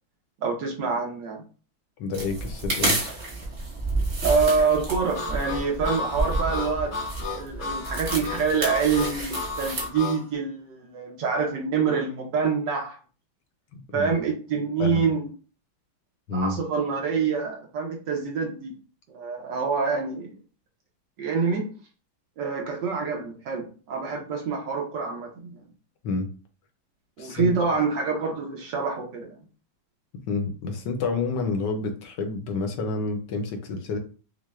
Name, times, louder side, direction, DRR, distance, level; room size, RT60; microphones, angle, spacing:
voice 1, 0.4-1.4 4.2-6.9 7.3-13.0 13.9-15.3 16.3-18.7 19.1-20.4 21.2-21.7 22.4-25.5 27.2-29.3, right 5 dB, 65° right, 0 dB, 1.4 m, -26 dB
voice 2, 2.0-3.0 13.7-14.1 14.8-15.1 16.3-16.6 26.0-26.3 27.2-27.8 30.1-34.0, left 3 dB, 70° left, 4 dB, 1.1 m, -29 dB
sound 1, 2.1-9.9, right 2 dB, 35° right, 1.1 m, -30 dB
Harmonica, 5.1-10.2, left 4 dB, 90° left, 0.6 m, -33 dB
6.3 x 2.1 x 2.3 m, 0.37 s
omnidirectional pair, 2.2 m